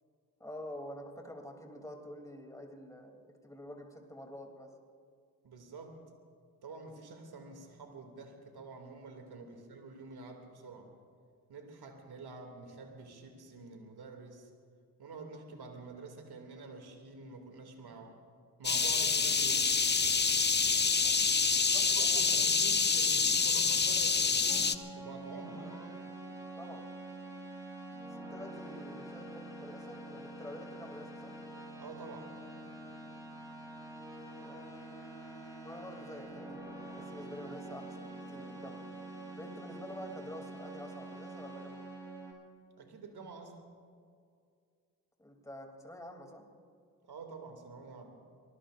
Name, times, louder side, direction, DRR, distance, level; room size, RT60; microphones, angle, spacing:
voice 1, 0.4-3.2 3.4-4.7 21.0-21.1 21.7-22.5 26.6-26.8 28.0-31.4 34.4-34.6 35.6-38.8 39.3-41.9 45.2-46.4, left 1 dB, 10° left, 2 dB, 3.1 m, -48 dB
voice 2, 5.4-6.0 6.6-10.9 11.5-14.5 15.0-18.2 18.6-19.7 21.8-25.7 31.8-32.4 42.8-43.6 47.1-48.2, right 3 dB, 65° right, 4 dB, 2.7 m, -48 dB
sound 1, 18.6-24.8, left 5 dB, 25° left, 0.8 m, -27 dB
sound 2, 24.5-42.3, right 2 dB, 10° right, 5.3 m, -46 dB
24.0 x 19.5 x 2.6 m, 2.2 s
hypercardioid pair, 40°, 41 cm